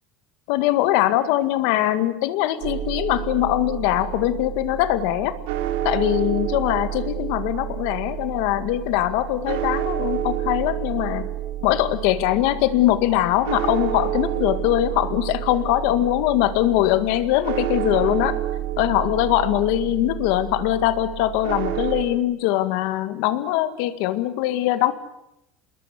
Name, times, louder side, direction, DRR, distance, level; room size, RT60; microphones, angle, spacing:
voice 1, 0.5-5.4 5.8-11.3 11.6-18.4 18.8-24.9, left 14 dB, 65° left, 12 dB, 1.9 m, -22 dB
sound 1, 2.6-22.0, right 12 dB, 85° right, 3.2 m, -29 dB
27.0 x 21.5 x 8.2 m, 0.85 s
cardioid pair, 165°, 0 cm